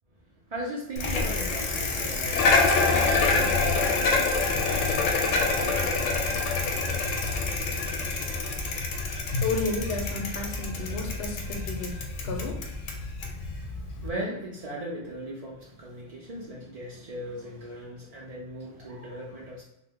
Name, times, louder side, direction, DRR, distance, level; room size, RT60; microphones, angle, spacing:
voice 1, 0.5-5.9 13.6-19.6, right 1 dB, 65° right, -4 dB, 0.3 m, -39 dB
Bicycle, 1.0-14.1, left 3 dB, 80° left, 1.0 m, -26 dB
voice 2, 9.4-12.0 12.2-12.6, left 3 dB, 65° left, 2 dB, 0.7 m, -32 dB
2.9 x 2.1 x 3.4 m, 0.90 s
omnidirectional pair, 1.3 m